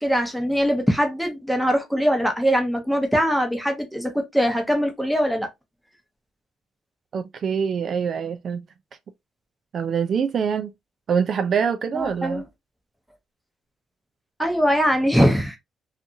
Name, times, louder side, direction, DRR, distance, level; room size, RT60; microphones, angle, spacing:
voice 1, 0.0-5.5 11.9-12.4 14.4-15.6, equal, ahead, 0.9 m, -22 dB
voice 2, 7.1-8.6 9.7-10.7 11.1-12.4, right 7 dB, 55° right, 0.4 m, -24 dB
2.5 x 2.4 x 2.6 m
cardioid pair, 90°, 0 cm